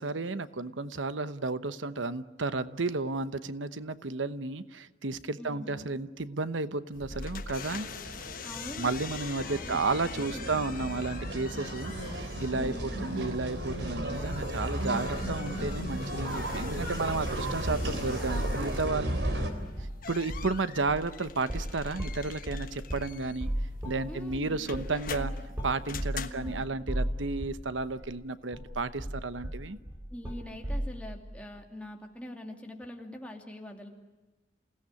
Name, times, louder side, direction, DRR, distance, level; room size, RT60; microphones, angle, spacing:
voice 1, 0.0-7.9 8.8-19.2 20.1-23.5 23.8-25.3 25.6-29.8, right 3 dB, 90° right, 13 dB, 1.0 m, -32 dB
voice 2, 5.4-5.9 8.4-9.0 9.4-10.8 12.5-13.3 19.3-19.7 24.1-24.6 25.0-25.4 26.1-26.7 30.1-33.9, left 1 dB, 5° left, 2 dB, 2.6 m, -44 dB
sound 1, 6.9-26.6, left 6 dB, 45° left, 1.3 m, -45 dB
sound 2, 7.5-19.5, right 1 dB, 65° right, 3.7 m, -35 dB
sound 3, 18.3-18.6 18.9-20.0 20.2-20.6 20.9-27.7 28.0-28.1 28.5-30.9, equal, 10° right, 5.5 m, -35 dB
28.5 x 17.5 x 9.7 m, 1.2 s
head